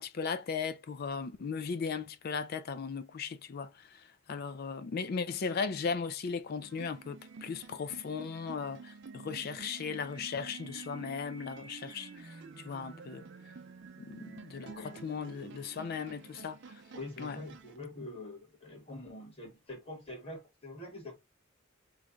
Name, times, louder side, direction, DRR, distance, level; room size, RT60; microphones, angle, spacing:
voice 1, 0.0-3.7 4.3-12.4 12.6-13.2 14.0-16.6 17.2-17.4, left 5 dB, 50° left, 0.4 m, -37 dB
sound 1, 6.6-17.8, right 4 dB, 60° right, 0.5 m, -50 dB
voice 2, 14.6-15.3 16.9-21.2, left 1 dB, 30° left, 1.5 m, -45 dB
3.2 x 2.3 x 3.8 m
head